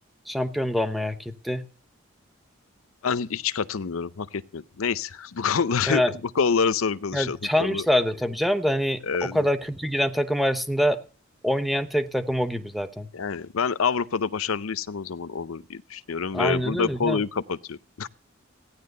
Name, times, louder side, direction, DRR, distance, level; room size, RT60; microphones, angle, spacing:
voice 1, 0.3-1.6 5.9-6.1 7.1-11.0 11.4-13.1 16.3-17.2, equal, ahead, 0.8 m, -25 dB
voice 2, 3.0-6.0 6.4-7.8 9.0-9.5 13.1-18.1, left 5 dB, 80° left, 0.6 m, -27 dB
15.5 x 10.0 x 6.7 m
head